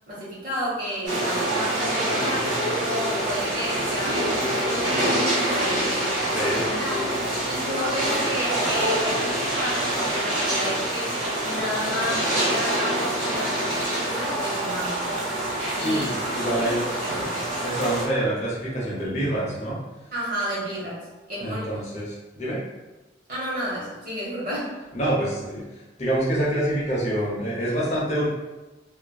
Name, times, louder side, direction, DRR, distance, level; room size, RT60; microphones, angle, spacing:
voice 1, 0.1-2.5 2.9-6.0 6.4-7.1 7.5-15.1 15.8-17.3 20.1-21.8 23.3-24.7, equal, 45° right, -7 dB, 1.0 m, -32 dB
sound 1, 1.1-18.1, right 1 dB, 80° right, 1.1 m, -26 dB
voice 2, 6.3-6.6 15.8-16.8 17.6-19.8 21.4-22.6 24.9-28.3, right 1 dB, 35° left, -6 dB, 0.6 m, -26 dB
2.9 x 2.4 x 2.2 m, 1.1 s
head